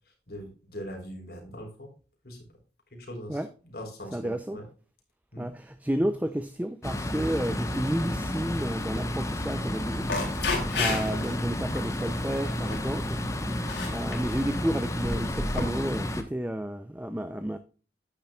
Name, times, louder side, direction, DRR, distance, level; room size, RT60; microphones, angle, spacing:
voice 1, 0.3-1.9 2.2-2.4 2.9-4.6 5.3-5.5 10.7-11.0, equal, 60° left, 3.8 m, -41 dB
voice 2, 4.1-4.6 5.4-13.2 13.9-17.6, right 1 dB, 10° right, 0.5 m, -31 dB
sound 1, 6.8-16.2, left 1 dB, 15° left, 1.1 m, -31 dB
sound 2, 10.0-11.3 11.8-12.0 12.5-12.9 13.5-14.4 15.0-15.6, left 3 dB, 90° left, 3.8 m, -31 dB
10.5 x 9.2 x 2.3 m
head